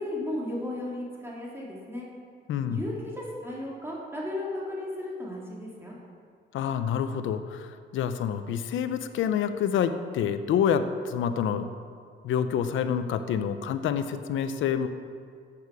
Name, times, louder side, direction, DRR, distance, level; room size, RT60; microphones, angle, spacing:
voice 1, 0.0-2.1 2.6-6.0, left 1 dB, 10° right, -5 dB, 3.6 m, -35 dB
voice 2, 2.5-2.8 6.5-11.7 12.2-14.9, left 8 dB, 80° left, 10 dB, 0.9 m, -27 dB
13.0 x 8.9 x 6.3 m, 2.2 s
cardioid pair, 90°, 20 cm